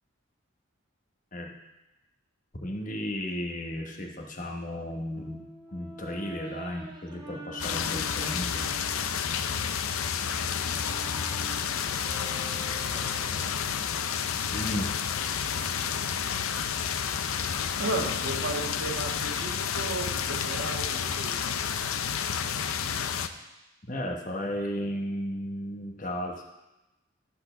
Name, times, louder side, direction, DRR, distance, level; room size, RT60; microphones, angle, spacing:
voice 1, 2.6-5.4 5.7-8.7 14.5-14.9 23.9-26.4, left 1 dB, 40° left, 1 dB, 1.1 m, -34 dB
Brass instrument, 5.2-9.1 9.7-13.8, right 2 dB, 20° right, 0.9 m, -46 dB
sound 1, 7.6-23.3, left 7 dB, 85° left, 0.6 m, -30 dB
voice 2, 12.0-14.1 17.8-21.6, right 2 dB, 80° right, 0 dB, 1.9 m, -36 dB
12.5 x 4.3 x 6.7 m, 1.0 s
head